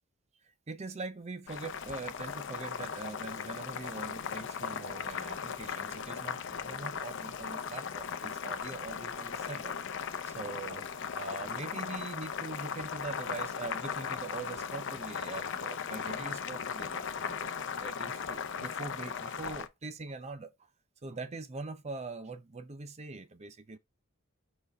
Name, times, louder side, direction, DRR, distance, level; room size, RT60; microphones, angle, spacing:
voice 1, 0.4-9.7 10.2-10.9 11.1-17.5 17.8-20.5 21.0-23.8, right 3 dB, 30° right, 0.5 m, -42 dB
Boiling, 1.5-19.7, left 6 dB, 55° left, 0.6 m, -38 dB
5.2 x 4.5 x 4.0 m
head